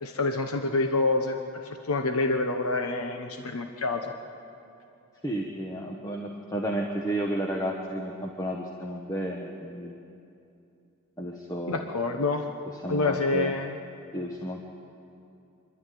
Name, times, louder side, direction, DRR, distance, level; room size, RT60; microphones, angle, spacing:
voice 1, 0.0-4.1 11.7-12.4 12.9-13.7, left 3 dB, 80° left, 5 dB, 1.1 m, -27 dB
voice 2, 5.2-10.0 11.2-11.8 12.8-13.5 14.1-14.6, right 1 dB, 15° left, 0 dB, 1.1 m, -32 dB
26.0 x 12.0 x 9.3 m, 2.7 s
head